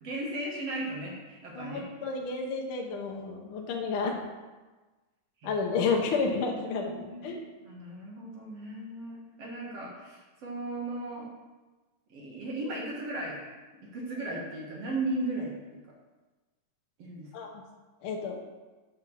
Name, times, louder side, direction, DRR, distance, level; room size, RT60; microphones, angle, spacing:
voice 1, 0.0-1.8 5.4-5.5 6.6-7.3 7.6-11.3 12.1-13.4 13.8-15.6 17.0-17.3, right 2 dB, 55° right, -3 dB, 2.4 m, -36 dB
voice 2, 1.5-4.2 5.4-7.4 17.3-17.5 18.0-18.4, left 4 dB, 80° left, 1 dB, 1.2 m, -31 dB
7.1 x 5.8 x 6.5 m, 1.2 s
omnidirectional pair, 3.7 m